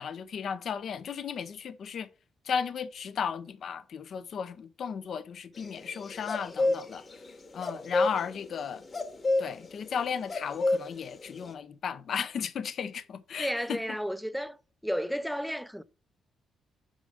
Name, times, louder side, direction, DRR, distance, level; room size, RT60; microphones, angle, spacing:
voice 1, 0.0-2.1 2.5-7.0 7.5-8.8 9.4-13.8, left 7 dB, 60° left, 0.7 m, -35 dB
sound 1, 5.6-7.3 7.6-11.5, left 2 dB, 30° left, 1.3 m, -28 dB
voice 2, 13.4-14.6 14.8-15.8, equal, ahead, 0.5 m, -32 dB
5.2 x 5.0 x 5.0 m
cardioid pair, 90°, 0 cm